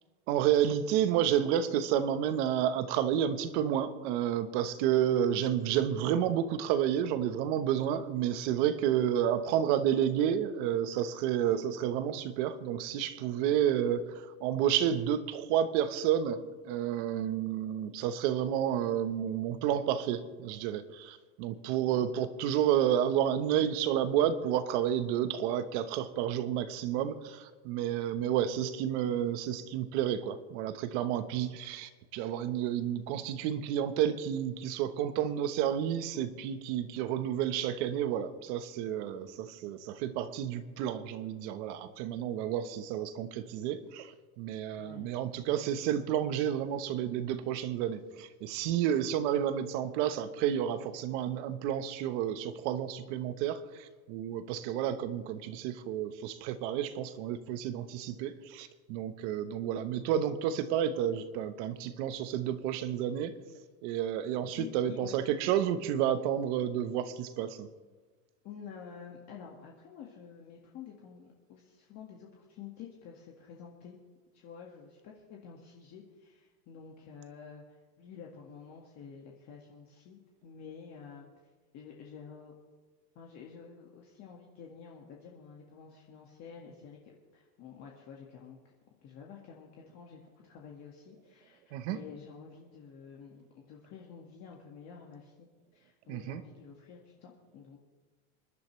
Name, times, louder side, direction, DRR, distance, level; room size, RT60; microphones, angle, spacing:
voice 1, 0.3-63.3 63.8-67.7 91.7-92.0 96.1-96.4, right 10 dB, 50° right, 11 dB, 1.2 m, -30 dB
voice 2, 44.8-45.1 64.5-65.5 68.4-74.0 74.3-81.3 81.7-82.6 83.2-88.6 89.0-97.8, left 6 dB, 35° left, -1 dB, 1.8 m, -49 dB
27.5 x 11.5 x 3.2 m, 1.4 s
supercardioid pair, 160°, 46 cm